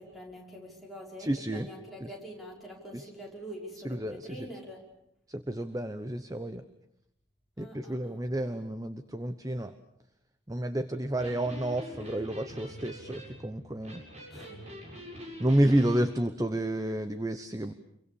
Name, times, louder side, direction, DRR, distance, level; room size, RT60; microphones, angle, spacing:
voice 1, 0.0-4.8 7.6-8.3 14.3-14.7, equal, ahead, -1 dB, 5.5 m, -45 dB
voice 2, 1.2-1.7 2.0-2.1 2.9-3.1 3.8-4.5 5.3-6.6 7.6-9.7 10.5-14.0 15.4-17.7, right 1 dB, 20° right, 10 dB, 0.9 m, -30 dB
Electric guitar, 11.0-16.1, equal, 35° right, 7.7 m, -44 dB
29.0 x 23.5 x 7.1 m, 0.79 s
head